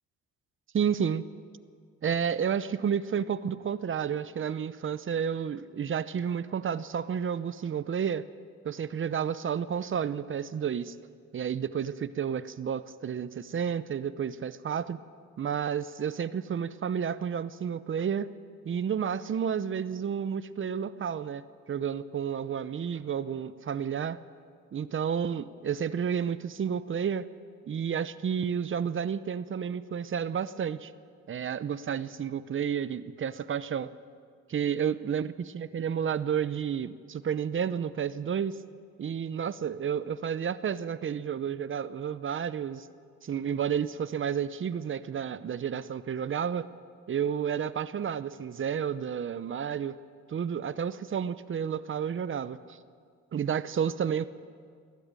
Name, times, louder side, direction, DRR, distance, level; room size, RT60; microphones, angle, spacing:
voice 1, 0.7-1.3 2.0-8.2 8.6-10.9 11.3-15.0 15.4-18.3 18.6-21.4 21.7-24.2 24.7-27.3 27.7-30.9 31.3-33.9 34.5-38.6 39.0-42.9 43.2-46.7 47.1-50.0 50.3-52.8 53.3-54.3, right 7 dB, 40° right, 15 dB, 0.8 m, -31 dB
21.5 x 13.5 x 9.0 m, 2.1 s
cardioid pair, 90°, 30 cm